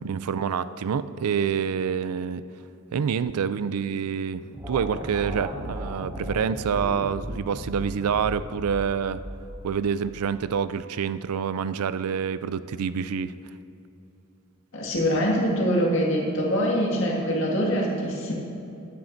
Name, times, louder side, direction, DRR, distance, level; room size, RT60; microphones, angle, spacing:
voice 1, 0.0-2.4 2.9-9.2 9.6-13.3, right 7 dB, 90° right, 14 dB, 0.4 m, -27 dB
sound 1, 4.5-10.0, equal, 20° right, 1.5 m, -36 dB
voice 2, 14.7-18.3, equal, 60° left, -2 dB, 2.0 m, -24 dB
13.5 x 11.5 x 2.7 m, 2.8 s
head